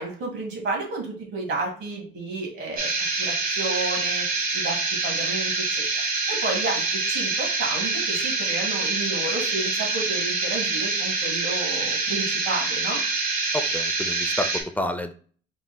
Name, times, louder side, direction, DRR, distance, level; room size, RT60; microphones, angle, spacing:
voice 1, 0.0-2.9 3.2-4.3 4.5-5.8 6.3-13.0, right 3 dB, 70° right, 1 dB, 2.0 m, -31 dB
sound 1, 2.8-14.6, right 3 dB, 45° right, 1.3 m, -26 dB
voice 2, 13.5-15.1, left 1 dB, 10° left, 7 dB, 0.5 m, -29 dB
4.6 x 3.9 x 2.3 m, 0.42 s
cardioid pair, 90°, 20 cm